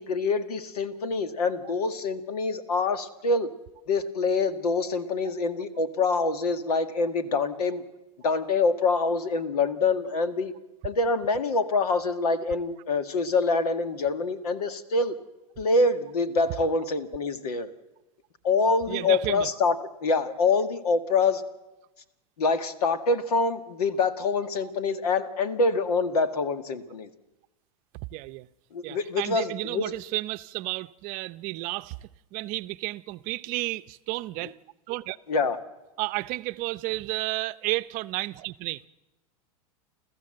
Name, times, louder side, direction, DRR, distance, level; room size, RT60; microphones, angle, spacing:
voice 1, 0.0-3.5 3.9-7.8 8.2-10.5 10.8-15.2 15.6-17.7 18.4-19.8 20.0-21.4 22.4-27.1 28.7-29.9 35.3-35.6, left 3 dB, 80° left, 1.8 m, -25 dB
voice 2, 18.9-19.5 28.1-28.5 28.8-34.6 34.9-35.2 36.0-38.9, right 20 dB, 45° right, 0.7 m, -32 dB
29.5 x 14.5 x 7.8 m
hypercardioid pair, 120°, 19 cm